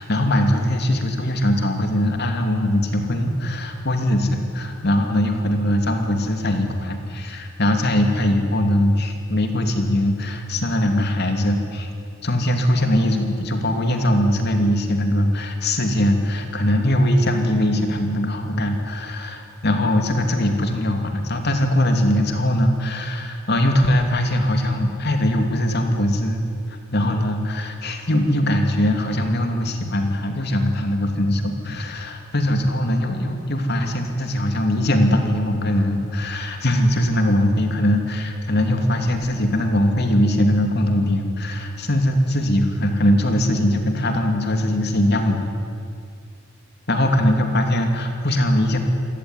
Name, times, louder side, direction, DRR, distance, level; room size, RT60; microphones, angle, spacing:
voice 1, 0.0-11.9 12.2-26.4 26.7-45.5 46.9-48.8, left 1 dB, 55° left, 4 dB, 2.9 m, -21 dB
27.5 x 17.0 x 9.9 m, 2.2 s
head